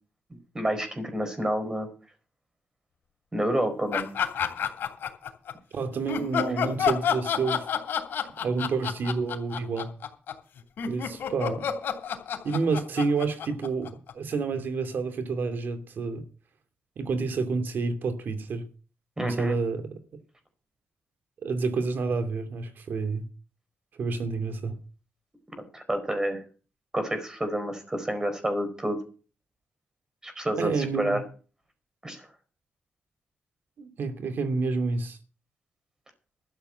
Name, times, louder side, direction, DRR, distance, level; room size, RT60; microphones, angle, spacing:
voice 1, 0.5-1.9 3.3-4.1 19.2-19.5 25.7-26.4 26.9-29.0 30.2-31.2 32.0-32.3, right 1 dB, 15° right, 4.5 m, -29 dB
sound 1, 3.9-5.5 6.1-14.3, left 8 dB, 80° left, 2.9 m, -29 dB
voice 2, 5.7-7.6 8.4-9.9 10.9-11.7 12.4-16.2 17.0-18.7 19.2-19.9 21.4-23.2 24.0-24.8 30.6-31.2 33.8-35.2, right 4 dB, 70° right, 2.6 m, -29 dB
13.5 x 7.1 x 7.9 m
cardioid pair, 90°, 4 cm